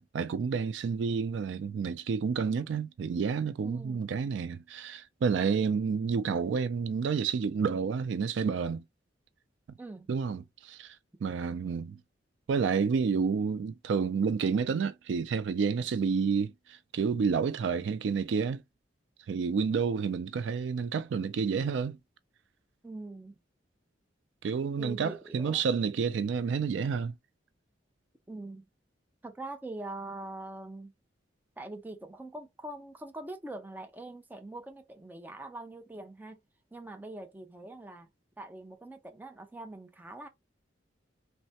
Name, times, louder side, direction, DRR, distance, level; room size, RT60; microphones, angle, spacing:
voice 1, 0.0-8.8 10.1-11.0 11.2-12.0 12.5-18.6 19.3-22.0 24.4-27.1, right 5 dB, 75° right, 0.3 m, -30 dB
voice 2, 3.6-4.1 9.8-10.1 22.8-23.4 24.8-25.6 28.3-28.7 29.2-30.9 31.6-36.4 36.7-38.1 38.4-40.3, right 2 dB, 10° right, 0.4 m, -43 dB
3.2 x 2.1 x 2.7 m
head